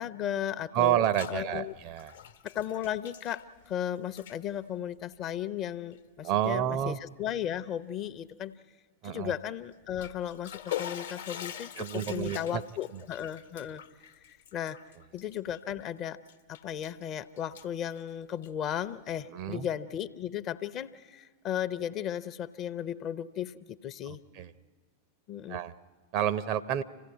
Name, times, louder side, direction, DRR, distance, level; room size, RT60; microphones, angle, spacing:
voice 1, 0.0-1.7 2.4-8.5 9.0-13.8 14.1-14.8 15.1-16.2 16.5-24.2 25.3-25.6, left 10 dB, 35° left, 13 dB, 0.7 m, -35 dB
voice 2, 0.7-2.1 6.2-7.0 9.0-9.3 11.8-12.6 19.3-19.7 24.1-24.5 25.5-25.7 26.1-26.8, right 11 dB, 45° right, 15 dB, 0.7 m, -29 dB
Bathtub (filling or washing), 0.8-1.4 1.7-3.8 4.1-4.4 5.1-5.3 5.9-6.0 6.5-6.6 9.7-15.9 16.3-17.0 17.4-18.7, left 11 dB, 65° left, 1.0 m, -43 dB
26.5 x 16.0 x 9.4 m, 1.5 s
figure-of-eight pair, 90°, 0 cm